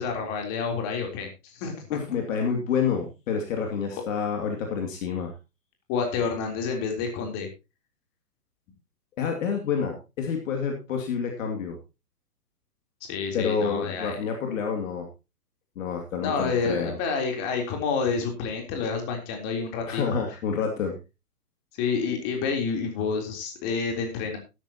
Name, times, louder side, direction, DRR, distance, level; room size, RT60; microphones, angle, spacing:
voice 1, 0.0-2.0 3.9-4.0 5.9-7.5 13.1-14.2 16.2-20.0 21.7-24.4, left 5 dB, 30° left, 3 dB, 3.7 m, -29 dB
voice 2, 1.9-5.3 9.2-11.8 13.3-15.1 15.8-17.0 19.9-20.9, left 6 dB, 55° left, 2 dB, 2.7 m, -28 dB
12.5 x 12.5 x 3.0 m, 0.28 s
hypercardioid pair, 145°, 48 cm